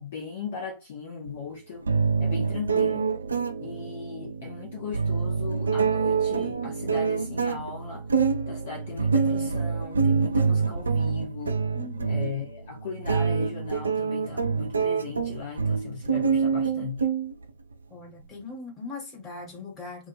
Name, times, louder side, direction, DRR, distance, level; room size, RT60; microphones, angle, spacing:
voice 1, 0.0-1.9 2.2-3.1 3.6-8.1 8.5-11.6 12.0-17.1, left 5 dB, 50° left, 0.6 m, -38 dB
sound 1, 1.3-1.4 1.9-17.7, right 5 dB, 75° right, 0.3 m, -26 dB
voice 2, 11.7-12.3 17.9-20.1, left 3 dB, 20° left, 1.1 m, -40 dB
2.1 x 2.1 x 3.0 m
figure-of-eight pair, 105°, 0 cm